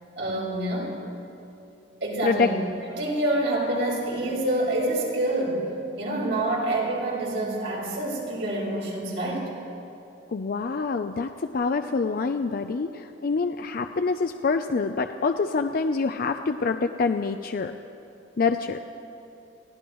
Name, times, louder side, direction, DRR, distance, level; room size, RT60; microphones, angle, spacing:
voice 1, 0.2-1.0 2.0-2.6 2.9-5.6 6.0-9.5, right 1 dB, 85° right, -4 dB, 4.8 m, -27 dB
voice 2, 10.3-17.7 18.4-18.8, left 4 dB, 50° left, 7 dB, 0.5 m, -26 dB
28.5 x 16.5 x 3.1 m, 2.7 s
head